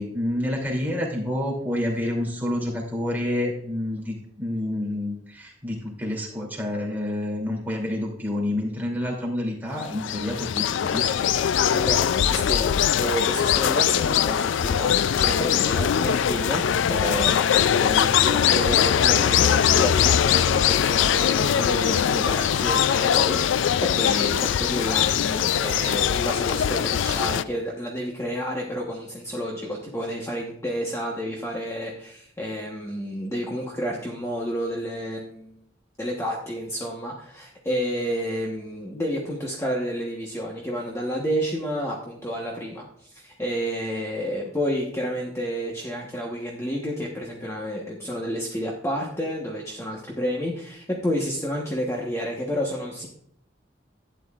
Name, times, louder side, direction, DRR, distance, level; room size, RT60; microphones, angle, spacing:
voice 1, 0.0-11.3, left 1 dB, 10° right, -2 dB, 2.8 m, -28 dB
sound 1, 9.8-27.4, left 9 dB, 75° left, 0.3 m, -21 dB
voice 2, 11.7-35.6 36.0-53.1, equal, 15° left, -1 dB, 1.1 m, -30 dB
12.0 x 9.5 x 2.4 m, 0.68 s
head